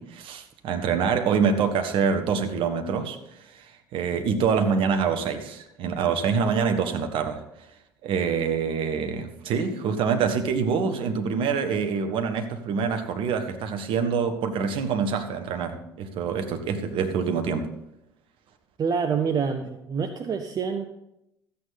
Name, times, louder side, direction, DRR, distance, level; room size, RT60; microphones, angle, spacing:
voice 1, 0.0-3.7 3.9-7.4 8.0-17.7, right 6 dB, 50° right, 7 dB, 1.3 m, -26 dB
voice 2, 18.8-20.8, right 6 dB, 35° right, 7 dB, 0.8 m, -26 dB
13.5 x 8.6 x 4.1 m, 0.85 s
figure-of-eight pair, 60°, 11 cm